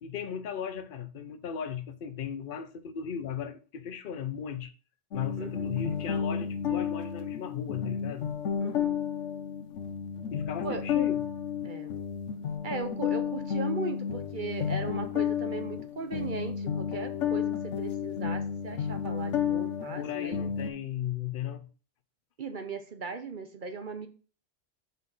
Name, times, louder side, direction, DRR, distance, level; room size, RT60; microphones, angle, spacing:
voice 1, 0.0-4.7 5.1-8.3 10.3-11.2 20.0-21.7, left 8 dB, 55° left, 0.8 m, -36 dB
sound 1, 5.1-20.7, left 8 dB, 80° left, 1.1 m, -32 dB
voice 2, 5.4-5.7 8.6-9.0 10.6-10.8 11.6-12.0 12.6-20.4 22.4-24.1, right 4 dB, 50° right, 0.8 m, -38 dB
5.5 x 4.1 x 5.4 m
omnidirectional pair, 1.2 m